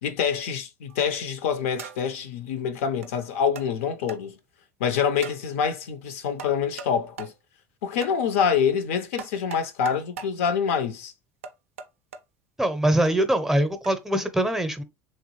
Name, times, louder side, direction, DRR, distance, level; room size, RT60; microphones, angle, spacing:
voice 1, 0.0-4.4 4.8-7.3 7.8-11.1, left 7 dB, 75° left, 0.5 m, -26 dB
sound 1, 0.9-1.2 1.8-2.2 3.0-3.1 3.6-3.7 4.1-4.2 5.2-5.4 6.4-6.9 7.2-7.3 8.0-8.2 9.2-10.3 11.4-12.2 13.1-13.2 13.8-14.0, right 6 dB, 85° right, 0.4 m, -39 dB
voice 2, 12.6-14.8, right 1 dB, 5° right, 0.5 m, -23 dB
3.0 x 2.2 x 3.0 m
hypercardioid pair, 75°, 7 cm